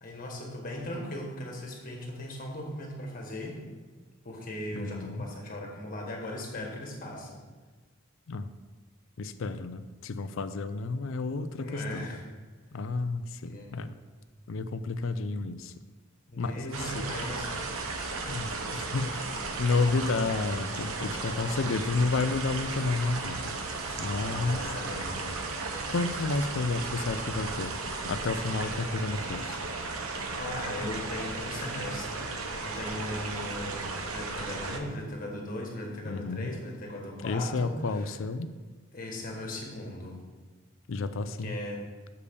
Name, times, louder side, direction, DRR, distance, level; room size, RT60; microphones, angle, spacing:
voice 1, 0.0-3.6 4.2-7.4 11.5-12.2 13.5-13.7 16.3-17.6 21.2-21.7 23.7-25.4 30.4-32.3 32.6-38.1 38.9-40.2 41.4-41.8, left 1 dB, 40° left, -1 dB, 1.6 m, -38 dB
voice 2, 4.7-5.3 8.3-8.5 9.2-12.1 12.7-14.0 14.5-15.7 16.4-17.1 18.3-19.3 19.6-23.6 24.0-24.7 25.9-27.7 28.1-29.6 36.1-36.5 37.2-38.5 40.9-41.6, left 3 dB, 70° left, 11 dB, 0.4 m, -31 dB
sound 1, 16.7-34.8, right 3 dB, 90° right, 0.9 m, -35 dB
6.7 x 5.1 x 6.9 m, 1.4 s
head